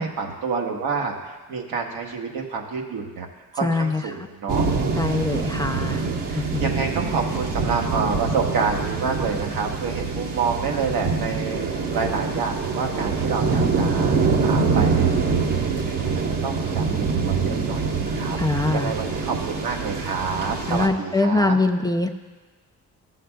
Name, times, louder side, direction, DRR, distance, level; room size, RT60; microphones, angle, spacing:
voice 1, 0.0-3.3 3.5-4.7 5.3-11.6 11.9-14.2 14.4-18.4 18.7-21.6, right 5 dB, 75° right, 1 dB, 1.2 m, -28 dB
voice 2, 3.6-4.0 5.0-6.0 6.3-6.7 18.4-18.9 20.7-22.1, left 2 dB, 10° left, 5 dB, 0.4 m, -23 dB
sound 1, 4.5-20.9, right 4 dB, 55° right, 1.2 m, -25 dB
13.5 x 6.3 x 2.3 m, 1.2 s
supercardioid pair, 65°, 36 cm